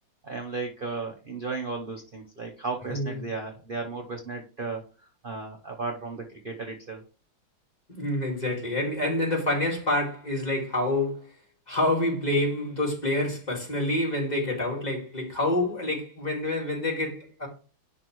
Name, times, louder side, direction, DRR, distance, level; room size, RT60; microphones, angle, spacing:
voice 1, 0.2-4.8 5.2-7.0, right 4 dB, 65° right, 0.5 m, -34 dB
voice 2, 2.9-3.3 7.9-11.3 11.7-17.5, left 1 dB, 20° left, 1.9 m, -27 dB
10.5 x 3.7 x 3.0 m
omnidirectional pair, 2.2 m